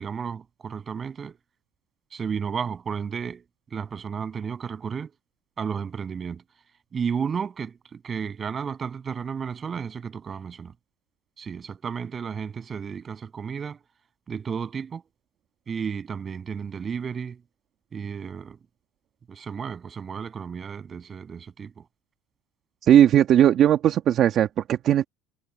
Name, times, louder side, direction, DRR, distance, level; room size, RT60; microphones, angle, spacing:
voice 1, 0.0-1.4 2.1-3.4 3.7-5.1 5.6-6.4 6.9-10.7 11.4-13.8 14.3-15.0 15.7-17.4 17.9-18.6 19.3-21.8, right 6 dB, 30° right, 8.0 m, -33 dB
voice 2, 22.8-25.0, right 10 dB, 45° right, 1.8 m, -18 dB
supercardioid pair, 110°, 0 cm